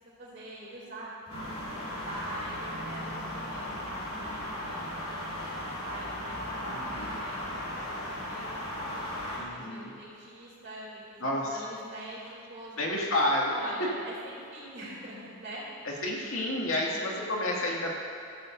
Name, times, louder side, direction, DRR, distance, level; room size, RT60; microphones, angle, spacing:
voice 1, 0.2-5.5 5.7-8.6 9.1-12.9 13.5-15.6 16.7-17.1, right 1 dB, 50° right, -12 dB, 3.2 m, -44 dB
sound 1, 1.3-9.4, left 1 dB, 85° left, 3.1 m, -36 dB
voice 2, 6.7-7.2 9.3-9.9 11.2-11.6 12.8-13.7 15.8-18.0, left 1 dB, 65° left, -3 dB, 2.3 m, -30 dB
14.5 x 14.5 x 2.7 m, 2.7 s
head